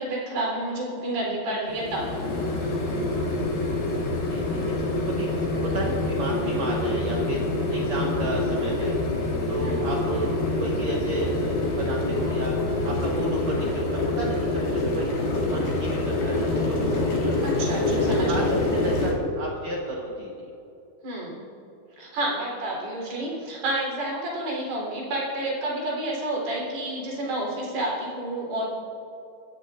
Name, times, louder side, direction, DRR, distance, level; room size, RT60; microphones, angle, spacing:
voice 1, 0.0-2.1 9.6-9.9 17.4-18.5 21.0-21.4 22.0-28.7, right 1 dB, 85° right, -4 dB, 5.8 m, -30 dB
sound 1, 1.7-19.1, left 2 dB, 85° left, 4.7 m, -26 dB
voice 2, 4.3-5.3 5.6-7.4 7.7-9.0 9.5-12.5 12.8-15.2 15.5-17.4 17.9-20.5, right 1 dB, 60° right, -2 dB, 2.1 m, -33 dB
23.5 x 14.0 x 2.5 m, 2.7 s
omnidirectional pair, 4.4 m